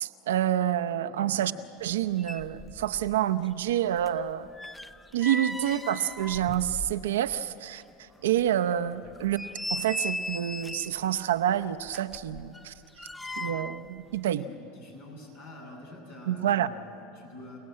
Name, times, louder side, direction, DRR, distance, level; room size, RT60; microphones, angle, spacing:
voice 1, 0.0-1.5 1.8-4.5 5.1-7.8 8.2-9.4 9.7-12.7 13.4-14.5 16.3-16.7, right 11 dB, 85° right, 10 dB, 0.7 m, -28 dB
sound 1, 1.9-2.0 2.2-3.2 3.5-7.4 7.8-7.9 8.4-8.5 9.1-11.0 11.9-13.9 14.1-14.3, left 1 dB, 10° left, 0.6 m, -38 dB
voice 2, 14.4-17.6, left 1 dB, 85° left, -2 dB, 7.2 m, -47 dB
29.0 x 18.5 x 8.7 m, 2.8 s
hypercardioid pair, 90°, 0 cm